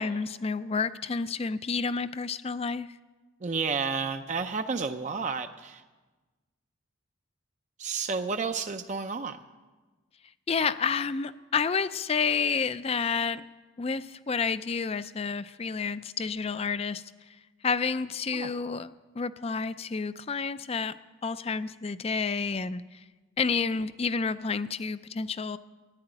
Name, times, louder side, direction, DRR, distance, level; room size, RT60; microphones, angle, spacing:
voice 1, 0.0-2.9 10.5-13.4 13.8-17.0 17.6-18.9 19.1-21.0 21.2-23.0 23.4-25.6, left 5 dB, 30° left, 14 dB, 0.4 m, -30 dB
voice 2, 3.4-5.8 7.8-9.4 18.3-18.5, right 5 dB, 35° right, 7 dB, 0.5 m, -31 dB
14.0 x 10.5 x 8.9 m, 1.3 s
head